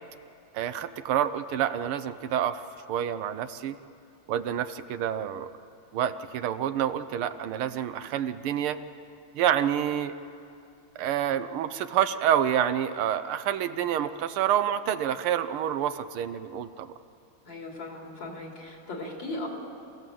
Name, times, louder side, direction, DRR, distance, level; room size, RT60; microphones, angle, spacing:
voice 1, 0.5-2.6 2.9-3.8 4.3-5.5 5.9-8.8 9.3-10.1 11.0-16.9, right 10 dB, 85° right, 10 dB, 1.7 m, -28 dB
voice 2, 17.4-19.5, left 2 dB, 60° left, -1 dB, 4.0 m, -37 dB
27.5 x 16.0 x 7.7 m, 2.5 s
omnidirectional pair, 2.3 m